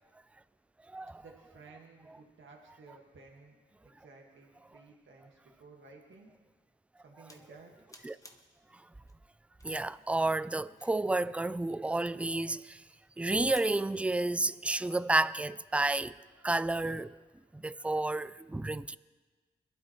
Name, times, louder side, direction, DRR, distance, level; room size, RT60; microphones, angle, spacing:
voice 1, 1.2-3.6 3.8-6.3 7.0-7.7, right 3 dB, 70° right, 1.8 m, -55 dB
sound 1, 7.3-7.6 7.9-8.6 9.1-9.2 9.6-11.2 13.2-14.0, left 1 dB, 15° left, 1.1 m, -59 dB
voice 2, 9.6-12.8 13.2-16.1 16.4-17.2 17.5-19.0, right 2 dB, 5° right, 0.3 m, -31 dB
22.0 x 12.0 x 3.1 m
cardioid pair, 85°, 20 cm